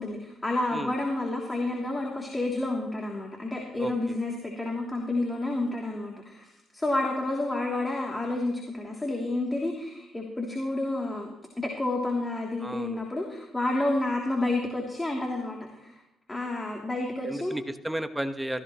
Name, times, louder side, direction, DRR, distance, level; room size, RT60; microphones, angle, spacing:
voice 1, 0.0-15.9 16.3-17.5, left 2 dB, 20° left, -1 dB, 2.9 m, -30 dB
voice 2, 3.8-4.2 12.6-13.0 17.2-18.6, right 1 dB, 10° right, 9 dB, 1.2 m, -33 dB
16.0 x 15.0 x 3.1 m, 0.91 s
hypercardioid pair, 45°, 0 cm